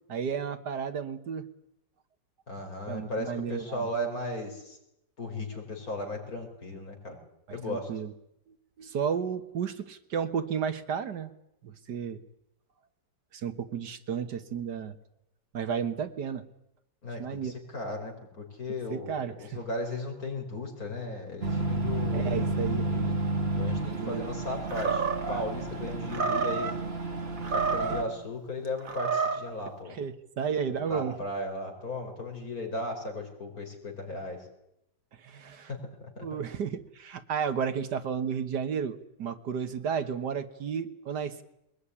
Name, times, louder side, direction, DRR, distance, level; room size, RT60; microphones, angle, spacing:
voice 1, 0.1-1.5 2.9-3.9 7.5-8.1 8.8-11.3 11.6-12.2 13.3-14.9 15.5-16.4 17.2-17.5 18.9-19.6 22.1-22.9 23.8-24.3 29.9-31.2 35.2-35.7 36.2-41.4, right 7 dB, 70° right, 10 dB, 1.9 m, -33 dB
voice 2, 2.5-4.8 5.2-7.2 7.5-7.9 17.0-22.5 22.7-23.3 23.6-26.7 27.5-30.0 30.7-34.4 35.7-36.3, left 2 dB, 50° left, 3 dB, 5.4 m, -36 dB
sound 1, 21.4-28.0, right 2 dB, 35° right, 2.6 m, -31 dB
Animal, 24.7-25.4 26.1-26.8 27.4-28.1 28.8-29.5, right 5 dB, 50° right, 2.2 m, -29 dB
22.0 x 20.0 x 9.9 m, 0.82 s
omnidirectional pair, 1.9 m